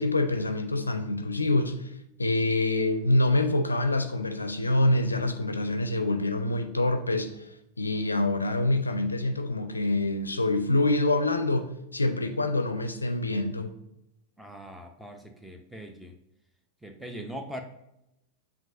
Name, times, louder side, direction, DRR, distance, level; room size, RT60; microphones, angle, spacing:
voice 1, 0.0-1.9 2.2-7.5 7.8-13.7, left 2 dB, 80° left, 0.4 m, -26 dB
voice 2, 14.4-16.2 16.8-17.6, equal, 5° right, 0.5 m, -41 dB
7.2 x 2.6 x 2.5 m
figure-of-eight pair, 90°, 0 cm